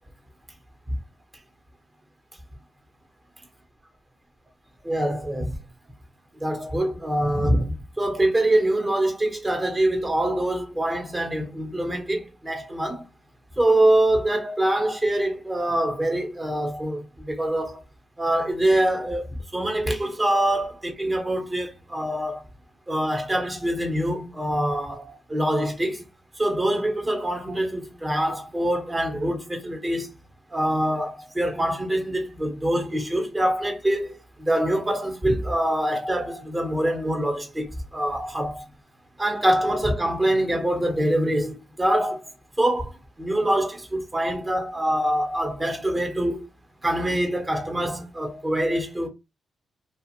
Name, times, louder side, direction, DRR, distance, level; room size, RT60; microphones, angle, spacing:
voice 1, 4.8-5.6 6.3-13.1 13.6-17.8 18.2-22.5 22.9-26.0 26.4-30.1 30.5-38.6 39.2-42.3 42.6-46.5 46.8-49.1, right 1 dB, 25° right, 1.1 m, -24 dB
2.5 x 2.4 x 2.9 m
supercardioid pair, 55°, 0 cm